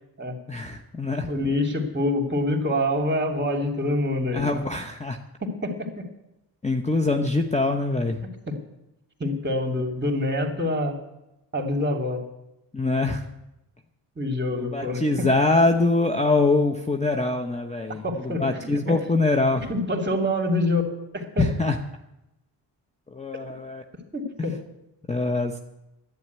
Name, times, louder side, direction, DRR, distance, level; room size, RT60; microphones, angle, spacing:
voice 1, 0.5-1.3 4.3-5.2 6.6-8.2 12.7-13.3 14.5-19.7 21.4-21.8 23.1-23.8 24.4-24.5 25.1-25.6, left 2 dB, 15° left, 4 dB, 1.0 m, -24 dB
voice 2, 1.3-4.4 5.4-6.0 9.2-11.0 11.5-12.2 14.2-15.0 18.0-18.7 19.7-20.8 21.1-21.4 24.1-24.5, left 1 dB, 25° right, 3 dB, 2.8 m, -26 dB
11.0 x 9.3 x 9.3 m, 0.90 s
cardioid pair, 85°, 45 cm